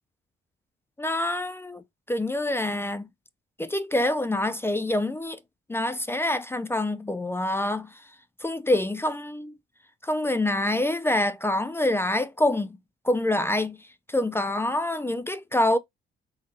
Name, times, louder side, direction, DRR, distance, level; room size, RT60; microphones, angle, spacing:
voice 1, 1.0-3.1 3.6-5.4 5.7-8.0 8.4-9.5 10.0-12.8 13.0-13.8 14.1-15.8, left 1 dB, 10° left, 0.4 m, -26 dB
3.9 x 2.6 x 2.9 m
cardioid pair, 90°, 20 cm